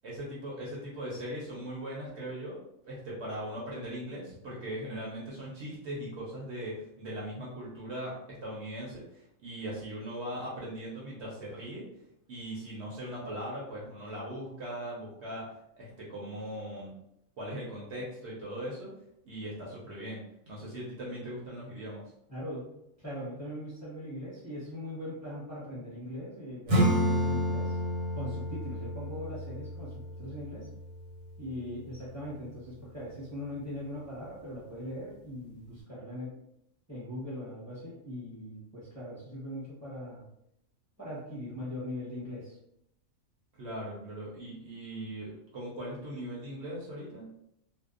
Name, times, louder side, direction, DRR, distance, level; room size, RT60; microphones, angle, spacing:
voice 1, 0.0-2.6 2.9-11.9 12.3-15.5 15.8-16.9 17.4-18.9 19.2-20.2 20.5-22.0 43.6-47.3, right 1 dB, 60° right, -5 dB, 0.8 m, -39 dB
voice 2, 22.3-22.7 23.0-27.8 28.1-30.7 31.4-36.3 36.9-40.2 41.0-42.6, left 1 dB, 15° left, -8 dB, 0.8 m, -40 dB
Acoustic guitar / Strum, 26.7-31.9, equal, 85° right, 1.3 m, -31 dB
2.6 x 2.1 x 2.4 m, 0.79 s
omnidirectional pair, 1.5 m